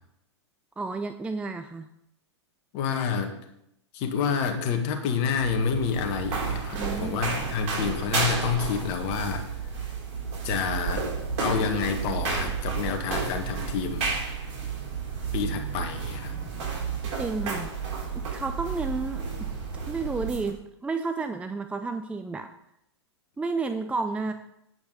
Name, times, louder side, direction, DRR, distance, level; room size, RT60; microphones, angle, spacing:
voice 1, 0.8-1.9 6.7-7.2 17.2-17.7 18.1-19.5 19.9-22.5 23.4-24.3, right 3 dB, 10° right, 8 dB, 0.4 m, -31 dB
voice 2, 2.7-3.4 3.9-9.5 10.4-11.1 11.4-14.1 15.3-16.3, left 6 dB, 45° left, 5 dB, 1.8 m, -28 dB
sound 1, 5.2-20.5, right 5 dB, 45° right, 4.3 m, -31 dB
9.3 x 5.5 x 6.6 m, 0.78 s
hypercardioid pair, 110°, 15 cm